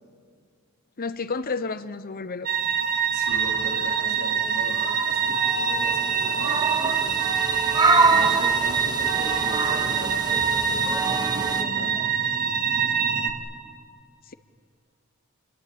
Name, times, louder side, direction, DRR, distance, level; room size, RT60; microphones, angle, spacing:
voice 1, 1.0-2.5, left 4 dB, 45° left, 13 dB, 0.8 m, -30 dB
sound 1, 2.5-13.3, right 7 dB, 40° right, 2.2 m, -25 dB
voice 2, 3.1-7.2 8.1-12.0, right 1 dB, 85° right, 1 dB, 3.7 m, -38 dB
sound 2, 3.3-3.9 4.7-11.6, right 3 dB, 20° right, 1.0 m, -26 dB
29.0 x 21.5 x 8.7 m, 2.2 s
head